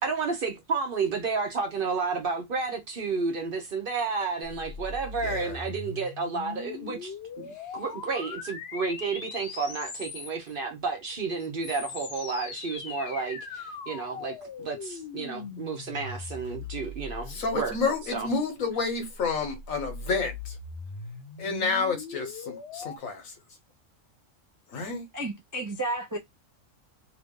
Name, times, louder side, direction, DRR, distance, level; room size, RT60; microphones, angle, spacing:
voice 1, 0.0-17.8 18.1-18.3, right 4 dB, 50° right, 0.8 m, -31 dB
sound 1, 4.4-10.5 11.4-18.0 19.1-23.0, left 4 dB, 60° left, 0.9 m, -40 dB
voice 2, 5.2-5.6 17.3-20.5 21.4-23.2 24.7-25.0, left 4 dB, 85° left, 1.4 m, -30 dB
voice 3, 25.1-26.2, right 2 dB, 30° right, 0.3 m, -32 dB
2.9 x 2.5 x 3.5 m
omnidirectional pair, 1.4 m